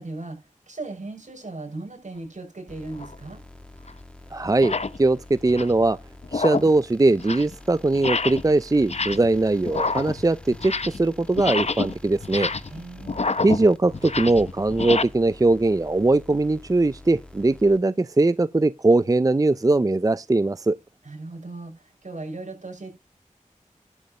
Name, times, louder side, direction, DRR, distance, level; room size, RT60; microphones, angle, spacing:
voice 1, 0.0-3.4 12.7-13.2 21.0-22.9, right 2 dB, 65° right, 6.6 m, -37 dB
sound 1, 2.7-17.8, left 2 dB, 5° left, 1.8 m, -46 dB
sound 2, 3.0-3.2 3.9-4.0 4.5-5.0 5.4-5.8 6.2-6.8 7.1-7.5 7.9-8.5 8.8-9.4 9.6-11.1 11.3-15.0, left 3 dB, 55° left, 0.9 m, -28 dB
voice 2, 4.3-4.7 5.0-6.0 6.3-12.5 13.4-20.8, right 2 dB, 25° right, 0.5 m, -21 dB
11.5 x 5.2 x 6.8 m
cardioid pair, 40°, 13 cm